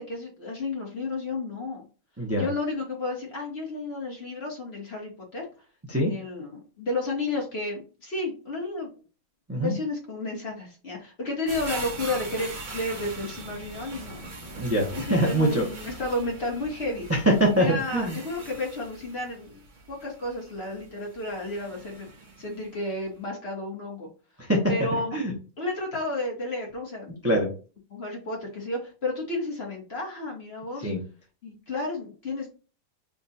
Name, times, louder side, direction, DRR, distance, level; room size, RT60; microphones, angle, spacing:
voice 1, 0.0-1.8 2.4-5.5 5.9-9.0 9.6-14.3 14.9-17.0 17.5-19.6 19.9-22.1 22.4-24.1 24.7-25.2 25.6-27.2 27.9-30.9 31.4-32.5, left 2 dB, 40° left, -1 dB, 1.2 m, -32 dB
voice 2, 2.2-2.5 5.9-6.1 9.5-9.7 14.6-15.7 17.1-18.2 24.4-25.3 27.2-27.5 30.8-31.0, right 1 dB, 20° right, -3 dB, 0.4 m, -24 dB
sound 1, 11.5-22.7 23.1-23.2, right 2 dB, 35° right, 0.8 m, -41 dB
3.7 x 2.3 x 4.0 m, 0.36 s
omnidirectional pair, 1.9 m